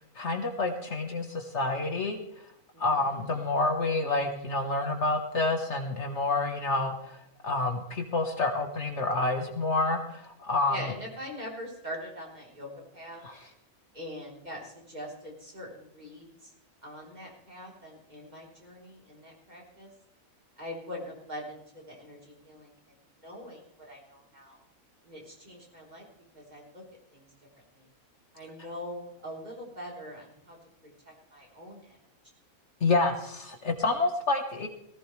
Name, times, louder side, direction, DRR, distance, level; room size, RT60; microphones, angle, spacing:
voice 1, 0.0-2.2 2.8-10.8 13.2-13.4 32.8-34.7, left 3 dB, 55° left, 5 dB, 1.6 m, -28 dB
voice 2, 2.7-3.3 10.7-13.2 13.9-16.5 16.8-19.9 20.6-22.7 23.2-24.6 25.0-26.1 26.3-26.8 27.1-27.2 27.7-27.9 28.3-30.6 31.1-32.0, equal, 30° right, -2 dB, 3.9 m, -43 dB
18.5 x 15.5 x 3.3 m, 0.74 s
omnidirectional pair, 1.5 m